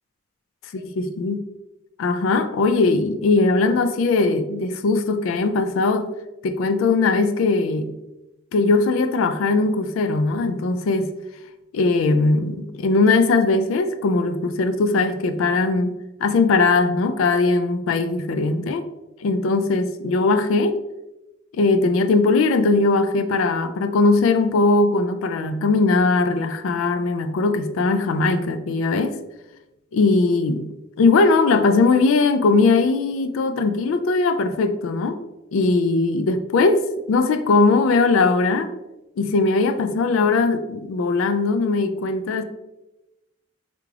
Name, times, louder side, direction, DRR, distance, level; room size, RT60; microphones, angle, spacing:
voice 1, 0.7-1.4 2.0-6.1 6.4-7.9 8.5-11.1 11.7-18.8 19.2-20.8 21.5-29.2 29.9-30.7 31.0-35.2 35.5-36.8 37.1-38.7 39.2-42.4, left 3 dB, 90° left, 0.3 m, -20 dB
3.5 x 2.4 x 3.2 m
head